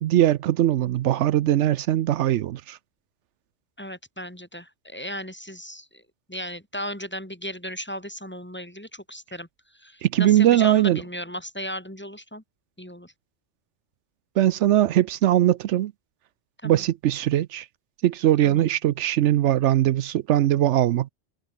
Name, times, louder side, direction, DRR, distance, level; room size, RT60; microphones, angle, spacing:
voice 1, 0.0-2.8 10.0-11.0 14.4-15.9 16.6-17.7 18.0-21.1, right 13 dB, 80° right, 0.9 m, -20 dB
voice 2, 3.8-5.9 6.3-9.5 9.8-12.4 12.8-13.1 16.6-16.8 18.4-18.6, equal, 10° left, 2.0 m, -36 dB
omnidirectional pair, 1.2 m